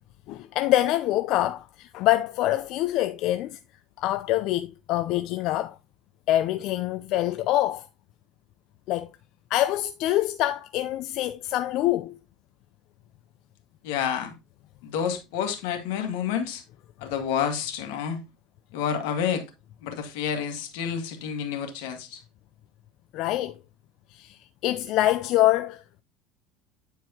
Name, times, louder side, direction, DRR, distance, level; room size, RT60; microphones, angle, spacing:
voice 1, 0.3-3.6 4.0-5.7 6.3-7.9 8.9-9.1 9.5-12.2 23.1-23.5 24.1-25.8, left 15 dB, 60° left, 0.4 m, -25 dB
voice 2, 13.8-14.3 14.8-16.6 17.0-18.2 18.7-19.5 19.8-22.2, left 8 dB, 85° left, 1.7 m, -29 dB
9.4 x 4.6 x 2.8 m
supercardioid pair, 125°, 0 cm